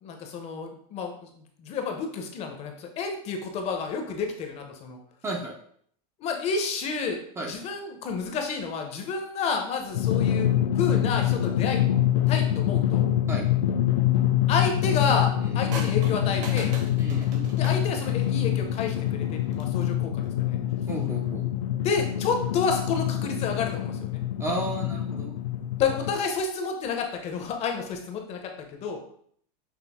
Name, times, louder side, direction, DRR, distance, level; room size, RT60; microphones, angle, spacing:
voice 1, 0.0-5.0 6.2-7.2 7.5-11.9 12.3-13.1 14.5-16.7 17.5-20.6 21.8-24.2 25.8-29.0, left 5 dB, 35° left, 4 dB, 0.6 m, -30 dB
voice 2, 5.2-5.6 7.4-7.5 13.3-13.4 15.4-15.6 17.0-17.3 20.9-21.5 24.4-25.3 26.0-26.1, right 2 dB, 15° right, 0 dB, 0.4 m, -33 dB
Drum, 9.9-26.1, left 11 dB, 80° left, 0.4 m, -25 dB
sound 1, 15.7-18.4 19.4-19.8, right 3 dB, 40° right, 0.8 m, -39 dB
5.9 x 2.0 x 3.4 m, 0.64 s
supercardioid pair, 150°, 20 cm